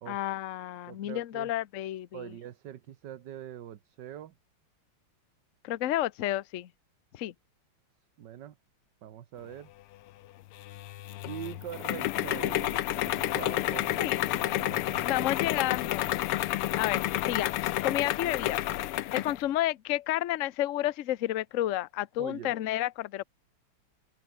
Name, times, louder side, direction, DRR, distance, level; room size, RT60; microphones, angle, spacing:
voice 1, 0.1-2.3 5.6-6.7 7.1-7.3 13.1-13.2 14.0-14.2 15.0-16.1 16.8-18.6 19.1-23.2, left 14 dB, 70° left, 0.7 m, -31 dB
voice 2, 0.9-1.5 2.1-4.3 8.2-8.6 9.0-9.7 11.2-15.9 22.2-22.5, right 11 dB, 60° right, 1.5 m, -43 dB
sound 1, 10.6-19.4, left 15 dB, 90° left, 1.7 m, -30 dB
open air
omnidirectional pair, 2.4 m